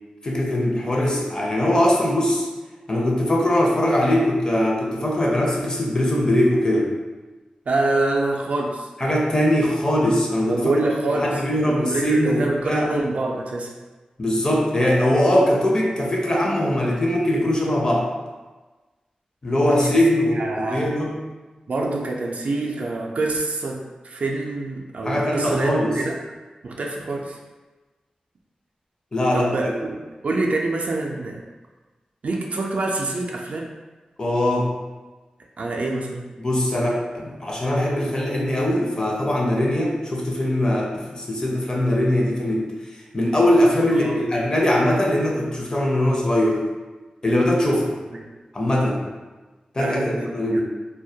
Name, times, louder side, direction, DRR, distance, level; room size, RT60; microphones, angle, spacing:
voice 1, 0.2-2.5 2.9-6.9 9.0-10.6 11.2-12.9 14.2-18.1 19.4-21.1 25.1-25.9 29.1-29.7 34.2-34.7 36.4-42.7 43.1-46.6 47.2-48.0 48.5-49.0 49.7-50.6, left 1 dB, 30° left, -2 dB, 0.5 m, -21 dB
voice 2, 7.7-8.9 10.5-13.7 19.7-20.0 20.3-20.9 21.7-26.2 26.6-27.4 29.3-31.4 32.2-33.7 35.6-36.3 43.9-44.2 48.1-48.3 49.8-50.3, right 2 dB, 65° right, 0 dB, 0.3 m, -26 dB
2.2 x 2.1 x 2.7 m, 1.2 s
wide cardioid pair, 70°, 3 cm